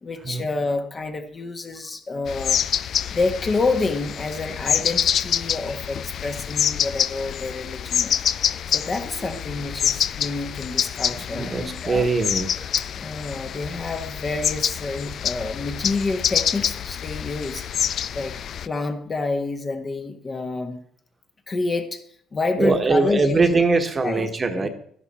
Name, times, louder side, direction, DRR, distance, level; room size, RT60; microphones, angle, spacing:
voice 1, 0.0-2.7 3.1-8.2 8.7-12.1 13.0-17.6 18.1-18.4 18.6-20.8 21.5-22.0 22.3-23.4 24.0-24.3 24.5-24.7, left 3 dB, 30° left, 6 dB, 1.4 m, -28 dB
sound 1, 2.3-18.7, left 9 dB, 55° left, 0.4 m, -26 dB
voice 2, 11.3-12.7 22.6-24.7, right 3 dB, 30° right, 7 dB, 1.3 m, -22 dB
12.0 x 11.0 x 4.3 m, 0.64 s
cardioid pair, 100°, 0 cm